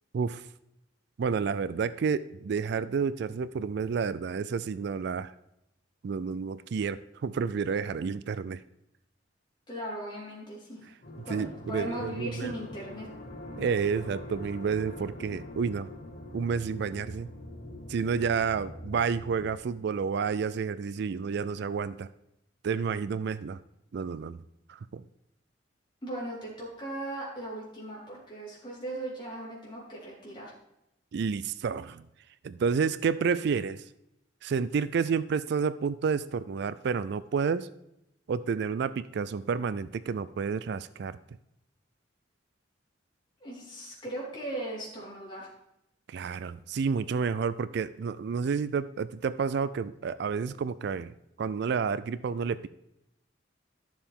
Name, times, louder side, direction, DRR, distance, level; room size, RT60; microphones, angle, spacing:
voice 1, 1.2-5.3 6.0-8.6 11.3-12.5 13.6-15.9 16.3-17.3 17.9-22.1 22.6-23.6 23.9-24.4 24.7-25.0 31.1-32.0 32.4-33.8 34.4-37.7 38.3-41.2 46.1-51.1 51.4-52.7, right 5 dB, 60° right, 16 dB, 0.4 m, -30 dB
voice 2, 9.7-10.9 11.3-13.1 26.0-30.5 43.4-45.5, right 1 dB, 25° left, -6 dB, 4.3 m, -38 dB
sound 1, 11.0-19.5, left 1 dB, 50° left, 1.8 m, -44 dB
12.0 x 7.0 x 3.7 m, 0.83 s
head